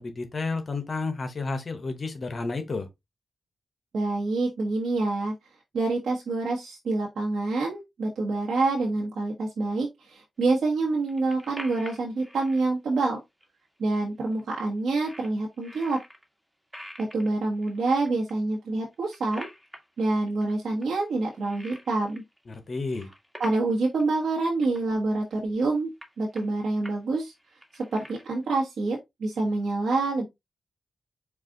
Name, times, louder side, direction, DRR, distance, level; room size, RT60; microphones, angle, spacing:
voice 1, 0.0-2.9 22.5-23.1, left 3 dB, 50° left, 1.0 m, -31 dB
voice 2, 3.9-5.3 5.7-13.2 13.8-16.0 17.0-19.5 20.0-22.2 23.4-25.9 26.2-27.3 27.7-30.2, right 3 dB, 75° right, 1.2 m, -27 dB
sound 1, 11.0-12.6 13.4-13.5 13.8-13.9 14.2-14.6 15.0-16.2 16.7-18.3 18.8-20.5 20.8-22.4 22.7-23.7 24.0-24.1 24.4-24.8 25.3-25.6 26.0-27.0 27.3-28.5, equal, 5° right, 1.5 m, -46 dB
4.8 x 2.4 x 3.8 m
cardioid pair, 55°, 0 cm